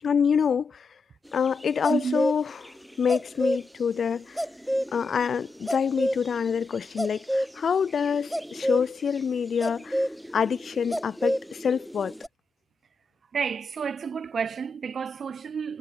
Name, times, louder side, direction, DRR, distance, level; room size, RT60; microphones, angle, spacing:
voice 1, 0.0-0.9 1.3-4.4 4.9-10.1 10.3-12.1, left 7 dB, 40° left, 4.6 m, -26 dB
sound 1, 1.5-3.6 4.0-4.1 4.4-12.3, equal, ahead, 2.4 m, -30 dB
voice 2, 1.9-2.3 13.3-15.8, right 6 dB, 40° right, 6.2 m, -30 dB
cardioid pair, 105°, 0 cm